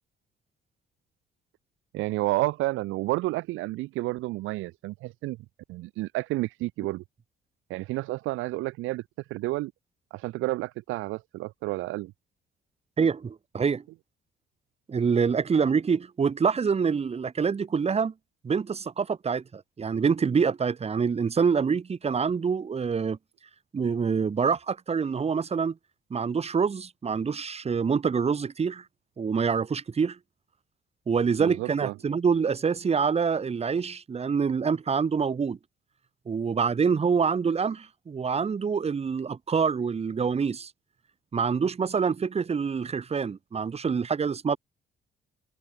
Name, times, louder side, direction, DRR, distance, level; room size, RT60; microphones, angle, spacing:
voice 1, 1.9-5.4 5.7-7.0 7.7-9.7 10.1-12.1 31.4-31.9, right 19 dB, 85° right, 0.4 m, -30 dB
voice 2, 13.0-13.8 14.9-18.1 18.4-23.2 23.7-25.7 26.1-28.8 29.2-30.2 31.1-35.6 36.3-40.7 41.3-44.6, right 6 dB, 30° right, 1.0 m, -26 dB
cardioid pair, 90°, 20 cm